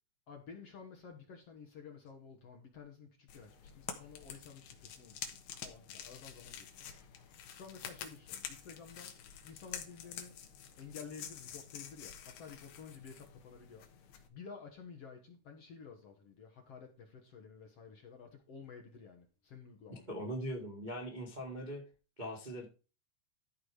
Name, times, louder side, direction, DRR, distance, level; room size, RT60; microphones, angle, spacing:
voice 1, 0.3-6.7 7.5-9.2 9.4-10.4 10.8-13.9 14.3-20.1, left 6 dB, 55° left, 1.7 m, -52 dB
sound 1, 3.3-14.3, left 8 dB, 75° left, 3.2 m, -48 dB
voice 2, 19.9-21.8 22.2-22.6, equal, 75° right, 0.4 m, -41 dB
13.5 x 4.8 x 4.9 m
omnidirectional pair, 4.6 m